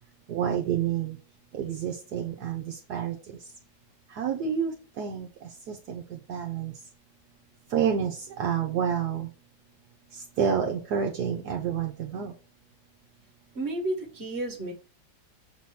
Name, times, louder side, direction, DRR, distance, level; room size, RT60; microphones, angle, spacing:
voice 1, 0.3-1.2 1.6-3.4 4.1-5.3 5.7-6.7 7.7-9.3 10.4-12.3, right 8 dB, 70° right, 1 dB, 1.3 m, -29 dB
voice 2, 13.5-14.7, right 1 dB, 40° right, 4 dB, 1.7 m, -31 dB
6.9 x 3.0 x 5.7 m, 0.36 s
omnidirectional pair, 1.9 m